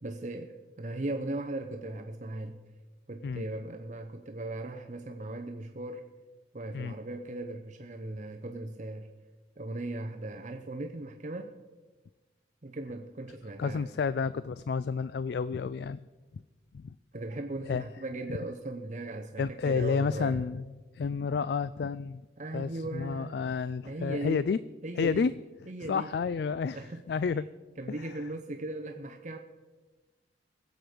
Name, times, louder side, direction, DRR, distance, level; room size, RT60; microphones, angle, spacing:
voice 1, 0.0-2.6 3.1-6.1 6.5-9.1 9.6-11.5 12.6-13.9 17.1-20.4 22.4-23.4 23.8-24.5 24.8-25.3 25.7-26.1 26.7-27.0 27.8-29.4, right 2 dB, 40° right, 5 dB, 0.7 m, -38 dB
voice 2, 13.6-16.0 16.7-16.9 17.7-17.9 19.4-20.7 20.9-22.2 22.5-24.6 25.0-25.3 25.8-27.5 27.9-28.1, left 5 dB, 60° left, 16 dB, 0.3 m, -30 dB
21.0 x 7.9 x 5.1 m, 1.3 s
head